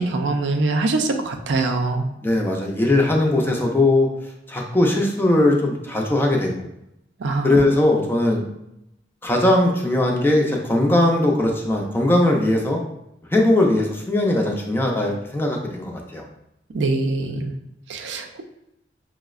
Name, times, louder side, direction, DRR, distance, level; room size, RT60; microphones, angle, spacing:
voice 1, 0.0-2.1 7.2-7.5 16.7-17.5 17.9-18.4, right 3 dB, 75° right, 4 dB, 0.4 m, -23 dB
voice 2, 2.2-4.1 4.5-6.7 7.4-8.4 9.2-12.8 13.3-16.2, left 1 dB, 10° left, 0 dB, 0.4 m, -19 dB
5.5 x 2.0 x 2.3 m, 0.83 s
head